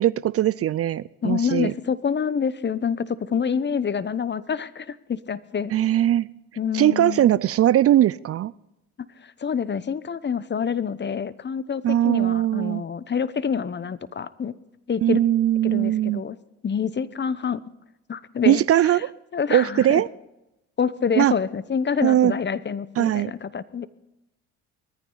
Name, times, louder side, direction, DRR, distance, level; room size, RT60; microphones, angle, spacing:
voice 1, 0.0-1.7 5.7-6.3 6.7-8.5 11.8-12.8 15.0-16.2 18.5-19.1 19.5-20.1 21.2-21.3 22.0-22.3 23.0-23.3, right 12 dB, 45° right, 0.5 m, -20 dB
voice 2, 1.2-5.7 6.6-7.3 9.2-14.5 14.9-15.2 15.6-16.4 16.6-17.6 18.1-18.6 18.9-19.0 19.3-20.0 20.8-23.9, left 7 dB, 35° left, 0.9 m, -27 dB
20.0 x 14.5 x 4.0 m
supercardioid pair, 60°, 33 cm